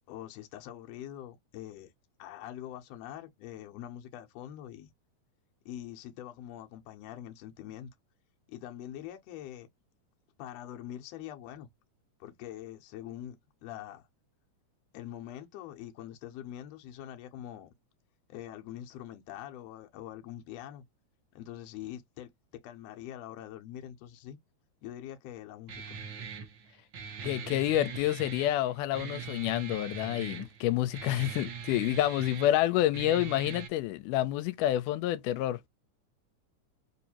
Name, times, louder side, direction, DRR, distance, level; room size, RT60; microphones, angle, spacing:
voice 1, 0.1-1.9 2.2-4.9 5.6-7.9 8.5-9.7 10.4-11.7 12.2-13.4 13.6-14.1 14.9-17.7 18.3-20.8 21.3-24.4 24.8-26.0, left 11 dB, 70° left, 1.7 m, -44 dB
Guitar, 25.7-33.7, right 6 dB, 75° right, 1.1 m, -42 dB
voice 2, 27.2-35.6, left 13 dB, 85° left, 2.1 m, -28 dB
4.7 x 2.6 x 2.8 m
omnidirectional pair, 3.6 m